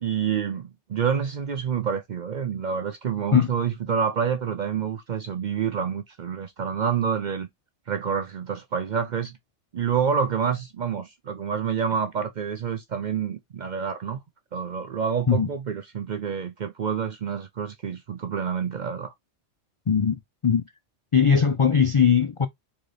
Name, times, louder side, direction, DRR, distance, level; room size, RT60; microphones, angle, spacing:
voice 1, 0.0-7.5 7.9-9.4 9.7-14.2 14.5-19.1, right 7 dB, 55° right, 0.5 m, -28 dB
voice 2, 19.9-20.6 21.1-22.5, left 7 dB, 55° left, 0.3 m, -20 dB
4.1 x 3.8 x 3.3 m
omnidirectional pair, 1.2 m